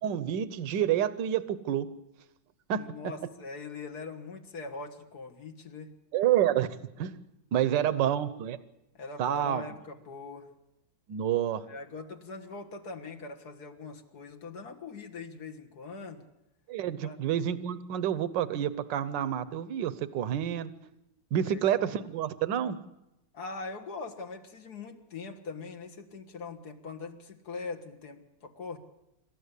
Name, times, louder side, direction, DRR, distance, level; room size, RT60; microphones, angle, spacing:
voice 1, 0.0-1.9 2.7-2.9 6.1-6.7 7.0-7.2 7.5-8.6 9.2-9.6 11.1-11.7 16.7-20.7 21.3-22.8, right 10 dB, 65° right, 14 dB, 1.5 m, -28 dB
voice 2, 2.8-5.9 7.6-8.1 8.9-10.5 11.7-16.2 17.0-17.2 21.3-21.6 23.3-28.8, left 3 dB, 55° left, 4 dB, 2.0 m, -42 dB
26.5 x 13.5 x 8.3 m, 0.89 s
omnidirectional pair, 2.1 m